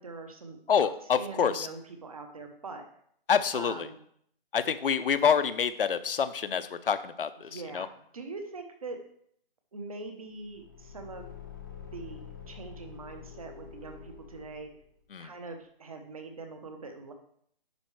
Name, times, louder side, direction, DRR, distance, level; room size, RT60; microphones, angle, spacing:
voice 1, 0.0-0.9 1.2-2.8 3.5-4.0 7.4-9.0 9.7-11.3 11.9-14.7 15.2-17.1, right 3 dB, 40° right, 5 dB, 0.9 m, -43 dB
voice 2, 0.7-1.7 3.3-3.9 4.5-7.9 15.1-15.3, left 7 dB, 70° left, 12 dB, 0.7 m, -27 dB
Car / Engine, 10.4-14.9, left 8 dB, 20° left, 0.6 m, -47 dB
10.5 x 4.6 x 3.2 m, 0.66 s
hypercardioid pair, 180°, 29 cm